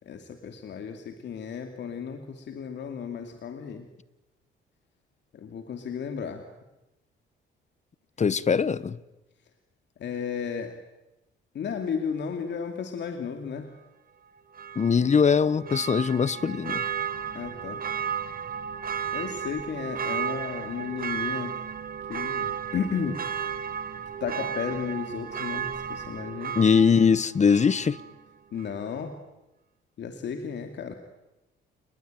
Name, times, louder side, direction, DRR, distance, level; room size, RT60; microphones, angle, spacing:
voice 1, 0.0-3.9 5.3-6.4 10.0-10.7 11.5-13.7 17.3-17.8 19.1-21.5 22.1-23.3 24.2-26.6 28.5-29.2 30.0-30.9, left 6 dB, 65° left, 2.8 m, -33 dB
voice 2, 8.2-9.0 14.7-16.8 26.6-28.0, left 6 dB, 35° left, 1.1 m, -21 dB
Church bell, 14.5-28.2 28.6-28.7, right 8 dB, 45° right, 1.7 m, -34 dB
29.5 x 21.0 x 9.2 m
cardioid pair, 90°, 20 cm